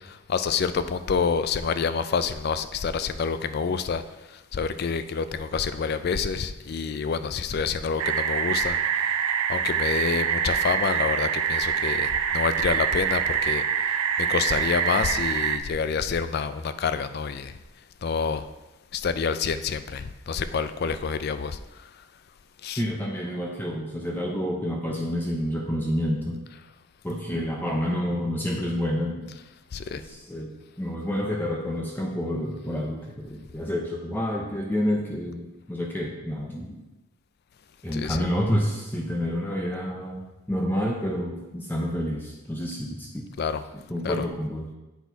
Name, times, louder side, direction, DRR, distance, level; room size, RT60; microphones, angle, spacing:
voice 1, 0.1-4.0 4.5-8.8 9.5-13.6 14.2-17.5 18.0-18.4 18.9-21.6 22.6-22.8 29.7-30.0 37.9-38.2 43.4-43.6 44.0-44.2, left 5 dB, 45° left, 12 dB, 0.3 m, -27 dB
sound 1, 8.0-15.6, right 7 dB, 90° right, 0.5 m, -25 dB
voice 2, 22.8-26.4 27.0-29.3 29.9-36.8 37.8-40.2 40.5-43.3 43.7-44.7, equal, 10° left, -1 dB, 0.6 m, -29 dB
8.2 x 4.2 x 4.5 m, 1.1 s
head